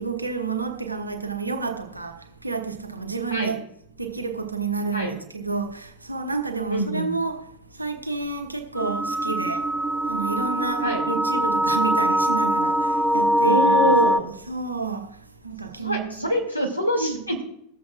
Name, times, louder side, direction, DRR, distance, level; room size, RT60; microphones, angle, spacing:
voice 1, 0.0-3.6 4.0-9.7 10.1-15.2 15.4-16.3 17.0-17.2, right 4 dB, 85° right, 1.0 m, -30 dB
voice 2, 6.7-7.1 10.8-11.1 13.4-14.3 15.8-17.4, equal, 90° left, 2.3 m, -25 dB
sound 1, 8.8-14.2, right 1 dB, 5° right, 0.5 m, -22 dB
22.0 x 7.4 x 2.5 m
figure-of-eight pair, 90°, 0 cm